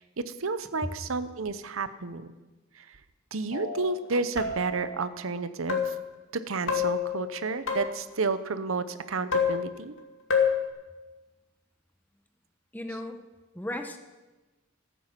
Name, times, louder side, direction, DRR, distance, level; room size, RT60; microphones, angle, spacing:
voice 1, 0.0-2.3 2.8-3.0 3.3-5.9 6.3-9.9, right 4 dB, 80° right, 12 dB, 0.8 m, -31 dB
sound 1, 3.5-3.9 4.4-4.9 5.7-6.1 6.7-8.1 9.3-10.0 10.3-10.7, left 7 dB, 65° left, 2.4 m, -28 dB
voice 2, 12.7-13.2 13.5-14.0, left 1 dB, 10° left, 5 dB, 1.0 m, -35 dB
15.0 x 9.3 x 7.4 m, 1.2 s
head